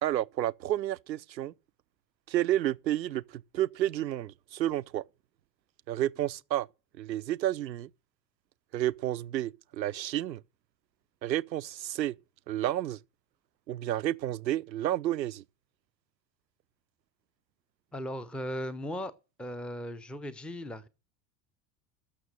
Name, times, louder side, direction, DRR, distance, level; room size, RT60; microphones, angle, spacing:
voice 1, 0.0-1.5 2.3-5.0 5.9-6.7 7.0-7.9 8.7-10.4 11.2-12.2 12.5-13.0 13.7-15.4, right 13 dB, 85° right, 0.5 m, -30 dB
voice 2, 17.9-19.1 19.4-20.9, equal, ahead, 0.7 m, -37 dB
13.0 x 6.4 x 7.6 m
figure-of-eight pair, 70°, 50 cm